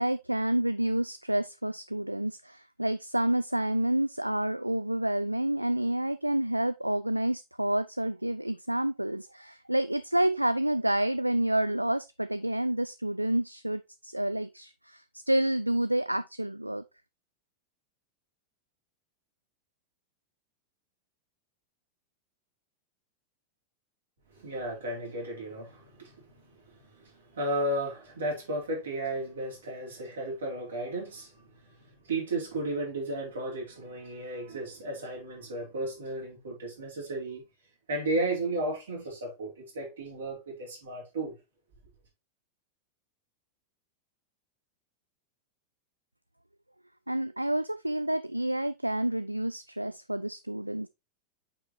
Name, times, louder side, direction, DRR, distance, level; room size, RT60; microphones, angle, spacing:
voice 1, 0.0-16.8 47.1-50.9, right 1 dB, 85° right, 0.3 m, -29 dB
voice 2, 24.3-31.7 32.1-37.4 37.9-41.4, right 1 dB, 65° right, 4.2 m, -34 dB
8.4 x 4.9 x 3.2 m
figure-of-eight pair, 90°, 0 cm